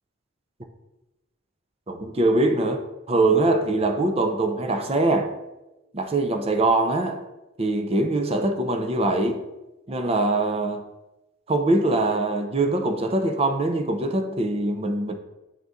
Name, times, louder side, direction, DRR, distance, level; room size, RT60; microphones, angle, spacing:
voice 1, 1.9-5.3 5.9-7.2 7.6-9.5 9.9-10.8 11.5-15.1, right 2 dB, 30° right, 6 dB, 0.5 m, -23 dB
7.4 x 4.0 x 3.5 m, 1.0 s
head